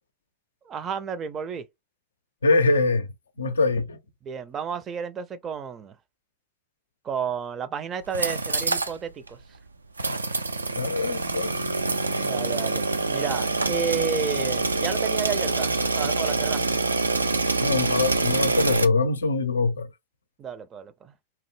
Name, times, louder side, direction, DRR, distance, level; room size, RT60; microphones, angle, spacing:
voice 1, 0.7-1.7 4.2-6.0 7.0-9.4 12.1-16.8 20.4-21.1, right 7 dB, 30° right, 0.5 m, -32 dB
voice 2, 2.4-3.1 3.4-4.0 10.7-11.5 17.6-19.9, left 3 dB, 80° left, 0.4 m, -23 dB
sound 1, 8.0-8.9 9.3-9.4 10.0-18.8, right 3 dB, 90° right, 0.3 m, -25 dB
2.8 x 2.0 x 3.2 m
figure-of-eight pair, 90°, 0 cm